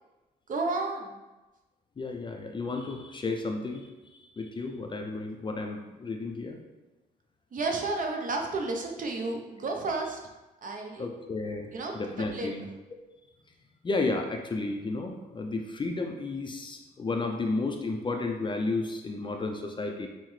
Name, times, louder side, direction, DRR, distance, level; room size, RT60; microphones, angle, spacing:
voice 1, 0.5-1.2 7.5-10.2 10.6-11.1 11.7-12.5, right 3 dB, 45° right, 2 dB, 0.7 m, -32 dB
voice 2, 2.0-6.6 11.0-12.7 13.8-20.1, left 3 dB, 25° left, 3 dB, 0.4 m, -32 dB
5.6 x 2.1 x 3.1 m, 1.1 s
cardioid pair, 90°, 18 cm